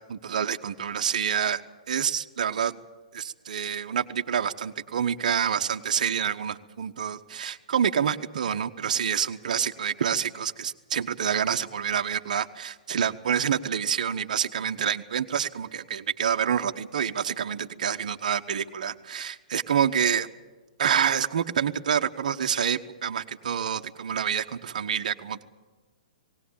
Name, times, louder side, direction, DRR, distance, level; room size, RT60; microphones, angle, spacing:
voice 1, 0.0-1.6 1.9-2.7 3.1-20.3 20.8-25.4, right 8 dB, 65° right, 6 dB, 1.1 m, -27 dB
19.0 x 18.5 x 8.6 m, 1.3 s
hypercardioid pair, 125°, 4 cm